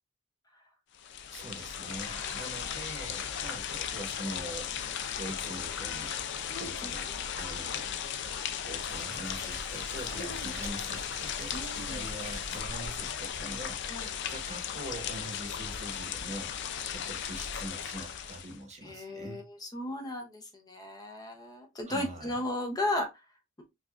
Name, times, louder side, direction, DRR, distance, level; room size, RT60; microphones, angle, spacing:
sound 1, 0.9-18.6, left 8 dB, 60° left, 0.4 m, -36 dB
voice 1, 1.3-4.9 5.2-6.2 6.6-7.1 7.3-7.9 8.6-16.6 16.9-19.4 21.9-22.4, right 1 dB, 35° right, 1.0 m, -43 dB
voice 2, 2.1-2.8 6.5-7.2 10.1-10.5 11.5-12.0 13.9-14.1 18.8-23.2, left 1 dB, 20° left, 0.6 m, -36 dB
Crackle, 8.8-13.8, right 2 dB, 70° right, 0.9 m, -47 dB
4.7 x 2.4 x 2.4 m
head